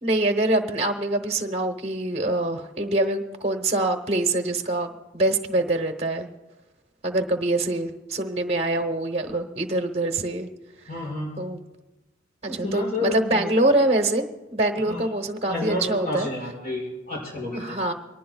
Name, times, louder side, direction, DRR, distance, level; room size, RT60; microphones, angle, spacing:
voice 1, 0.0-6.3 7.0-10.5 11.4-11.6 12.4-14.3 14.5-16.3 17.5-17.9, right 2 dB, 35° right, 6 dB, 1.0 m, -24 dB
voice 2, 10.9-11.4 12.5-13.5 14.9-15.0 15.5-17.8, left 2 dB, 45° left, -5 dB, 5.6 m, -30 dB
23.5 x 19.0 x 2.3 m, 1.1 s
head